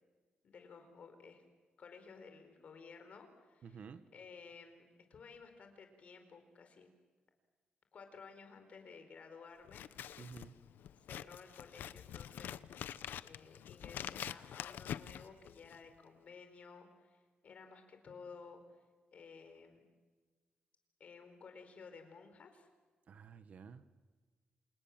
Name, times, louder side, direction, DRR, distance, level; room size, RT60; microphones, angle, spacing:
voice 1, 0.4-1.4 1.8-3.8 4.1-6.9 7.9-10.2 11.0-18.6 19.1-19.9 21.0-22.7, left 5 dB, 45° left, 7 dB, 4.6 m, -55 dB
voice 2, 3.6-4.0 10.2-10.6 23.1-24.0, right 6 dB, 50° right, 11 dB, 1.3 m, -52 dB
Scissors, 9.6-15.9, left 10 dB, 85° left, 0.8 m, -46 dB
28.5 x 28.0 x 7.4 m, 1.4 s
wide cardioid pair, 175°, 3 cm